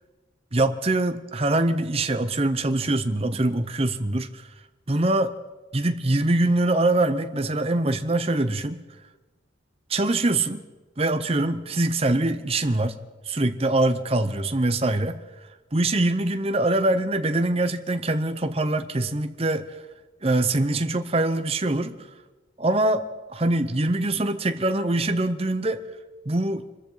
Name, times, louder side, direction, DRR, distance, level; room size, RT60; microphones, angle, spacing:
voice 1, 0.5-4.3 4.9-5.3 5.7-8.8 9.9-10.6 11.0-12.9 13.2-15.2 15.7-19.7 20.2-22.0 22.6-23.0 23.3-25.8 26.3-26.7, right 2 dB, 30° right, 9 dB, 0.8 m, -23 dB
25.5 x 14.0 x 4.0 m, 1.2 s
head